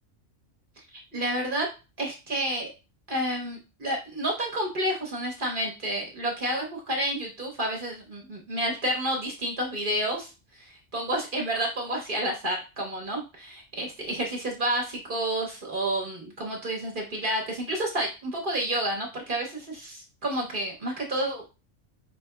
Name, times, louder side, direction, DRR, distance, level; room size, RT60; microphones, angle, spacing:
voice 1, 0.9-1.7 2.0-2.7 3.1-21.4, right 1 dB, 50° right, -1 dB, 0.9 m, -30 dB
5.0 x 2.7 x 2.2 m, 0.30 s
omnidirectional pair, 1.2 m